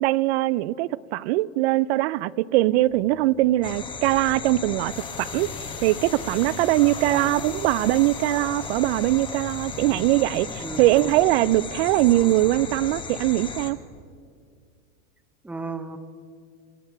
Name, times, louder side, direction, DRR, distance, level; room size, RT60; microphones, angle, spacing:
voice 1, 0.0-4.9 5.2-5.5 5.8-13.8, right 16 dB, 55° right, 21 dB, 0.5 m, -22 dB
sound 1, 2.7-12.8, left 6 dB, 70° left, 3.6 m, -44 dB
sound 2, 3.6-13.7, left 4 dB, 10° left, 1.0 m, -36 dB
voice 2, 15.4-16.0, right 3 dB, 5° right, 10 dB, 0.6 m, -35 dB
24.0 x 8.8 x 5.8 m, 2.2 s
supercardioid pair, 140°, 39 cm